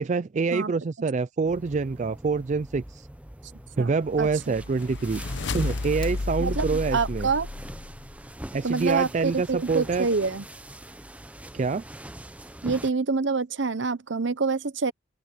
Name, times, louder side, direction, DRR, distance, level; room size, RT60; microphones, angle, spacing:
voice 1, 0.0-3.1 3.8-5.2 5.5-7.3 8.5-10.1 11.5-11.8, right 4 dB, 35° right, 0.4 m, -26 dB
sound 1, 1.4-12.9, right 1 dB, 5° right, 0.7 m, -43 dB
sound 2, 4.2-8.2, left 2 dB, 60° left, 0.9 m, -32 dB
Fire, 5.9-6.9, left 7 dB, 45° left, 2.6 m, -50 dB
voice 2, 6.9-7.5 8.6-10.4 12.6-14.9, right 4 dB, 65° right, 0.9 m, -26 dB
open air
head